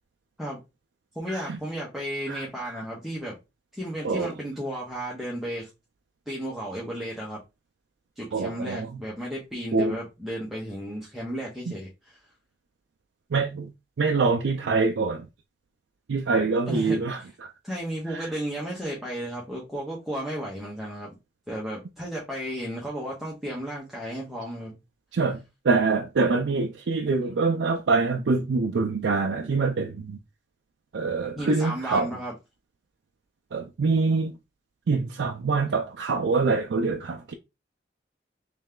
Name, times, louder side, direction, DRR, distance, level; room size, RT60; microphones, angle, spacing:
voice 1, 1.1-3.4 3.7-5.7 6.3-7.4 8.2-12.2 16.7-17.3 17.6-21.1 21.5-24.8 31.3-32.3, equal, ahead, 1.0 m, -34 dB
voice 2, 2.3-2.7 4.0-4.3 8.3-8.9 9.7-10.0 13.3-13.7 14.0-15.3 16.1-17.5 18.1-18.3 25.1-25.4 25.6-30.2 30.9-32.1 33.5-34.3 34.9-37.3, right 4 dB, 80° right, 0.4 m, -25 dB
3.3 x 3.1 x 3.7 m
head